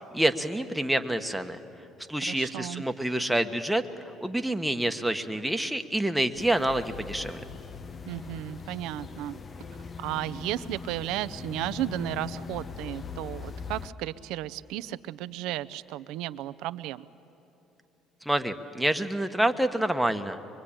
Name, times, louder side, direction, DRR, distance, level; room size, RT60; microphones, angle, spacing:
voice 1, 0.1-1.6 2.1-3.8 4.2-7.4 18.2-20.4, right 1 dB, 5° right, 6 dB, 1.4 m, -27 dB
voice 2, 2.2-2.8 8.1-9.4 10.0-17.1, right 14 dB, 80° right, 14 dB, 0.6 m, -34 dB
sound 1, 6.3-13.9, left 5 dB, 35° left, 0.9 m, -41 dB
24.0 x 23.5 x 8.8 m, 2.9 s
supercardioid pair, 80°, 0 cm